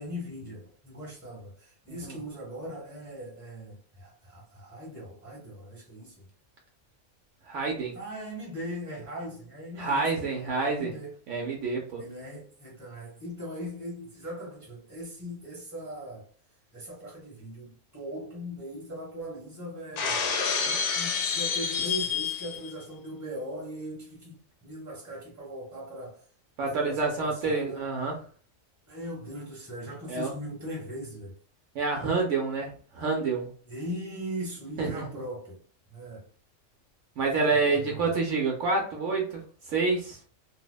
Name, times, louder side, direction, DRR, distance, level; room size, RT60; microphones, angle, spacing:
voice 1, 0.0-6.3 7.9-11.1 12.0-16.3 16.7-20.2 20.6-26.2 26.6-27.8 28.9-31.3 33.7-35.6 35.9-36.3 37.5-38.0, equal, 15° right, 1.0 m, -39 dB
voice 2, 7.5-8.0 9.8-10.9 11.3-12.0 26.6-28.2 30.1-30.3 31.7-33.5 34.8-35.0 37.2-39.4 39.7-40.2, right 4 dB, 70° right, 0.9 m, -28 dB
Shatter, 20.0-22.7, left 6 dB, 70° left, 0.8 m, -28 dB
2.7 x 2.0 x 2.2 m
omnidirectional pair, 1.4 m